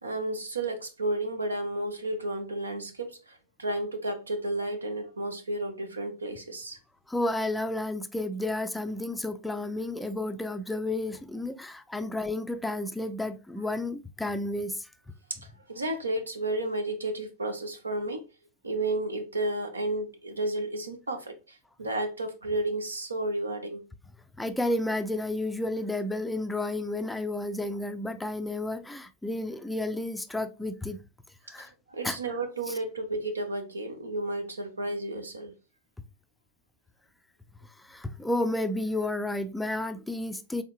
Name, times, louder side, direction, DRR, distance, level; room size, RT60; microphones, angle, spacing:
voice 1, 0.0-6.8 15.7-18.2 18.6-23.8 31.9-35.5, right 2 dB, 75° right, 0.8 m, -32 dB
voice 2, 7.1-14.9 24.4-31.0 31.5-31.7 32.0-32.2 32.7-32.8 37.6-40.6, left 2 dB, 5° left, 0.4 m, -31 dB
4.5 x 3.5 x 2.9 m
figure-of-eight pair, 90°, 0 cm